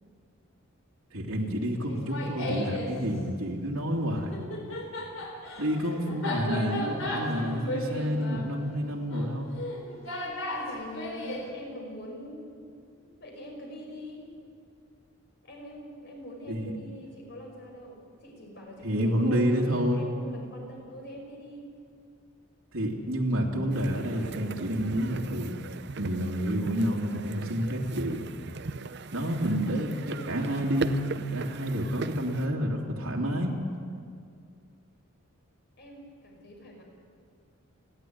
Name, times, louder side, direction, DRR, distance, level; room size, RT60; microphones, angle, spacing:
voice 1, 1.1-4.4 5.6-9.5 16.5-16.7 18.8-20.0 22.7-25.6 26.0-28.3 29.1-33.6, equal, 85° right, -2 dB, 2.8 m, -29 dB
Laughter, 1.9-2.9 4.2-11.5, left 1 dB, 70° left, 4.0 m, -35 dB
voice 2, 10.5-12.6 13.2-14.2 15.4-21.7 35.8-36.8, equal, 50° left, 0 dB, 5.4 m, -43 dB
sound 1, 23.7-32.5, right 3 dB, 50° right, 0.7 m, -39 dB
29.5 x 11.5 x 9.4 m, 2.3 s
head